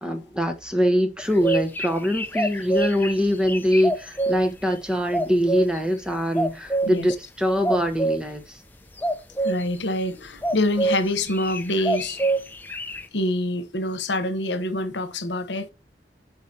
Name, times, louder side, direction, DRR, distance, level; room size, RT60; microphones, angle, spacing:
voice 1, 0.0-8.6, equal, 5° right, 1.0 m, -23 dB
sound 1, 1.2-4.4 5.1-5.8 6.3-6.9 7.6-8.2 9.0-9.6 10.4-11.0 11.2-13.0, right 2 dB, 10° left, 0.7 m, -25 dB
voice 2, 9.4-12.2 13.1-15.7, left 1 dB, 85° left, 1.1 m, -26 dB
8.1 x 5.1 x 2.8 m
head